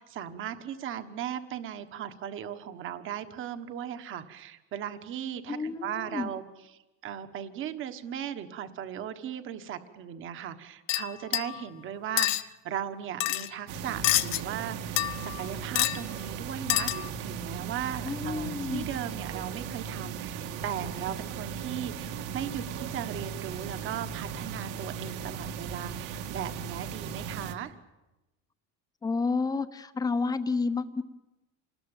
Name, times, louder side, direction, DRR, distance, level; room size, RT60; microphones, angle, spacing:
voice 1, 0.0-6.4 7.0-27.7, right 9 dB, 35° right, 9 dB, 1.4 m, -37 dB
voice 2, 5.5-6.3 18.0-18.9 29.0-31.0, left 4 dB, 10° left, 10 dB, 0.9 m, -30 dB
sound 1, 10.9-11.6 12.2-12.4 13.2-13.5 14.0-14.4 15.0-15.4 15.7-16.0 16.7-17.1, left 18 dB, 70° left, 1.0 m, -27 dB
sound 2, 13.7-27.5, right 7 dB, 60° right, 2.0 m, -37 dB
27.5 x 20.0 x 9.0 m, 1.0 s
cardioid pair, 170°, 35 cm